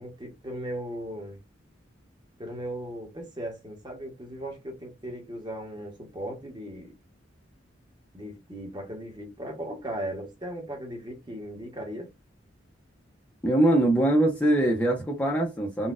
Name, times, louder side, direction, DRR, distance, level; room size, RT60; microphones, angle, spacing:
voice 1, 0.0-1.4 2.4-6.9 8.1-12.1, right 1 dB, 25° right, 1.1 m, -37 dB
voice 2, 13.4-15.9, right 1 dB, 10° left, 0.6 m, -22 dB
4.0 x 2.3 x 2.4 m
head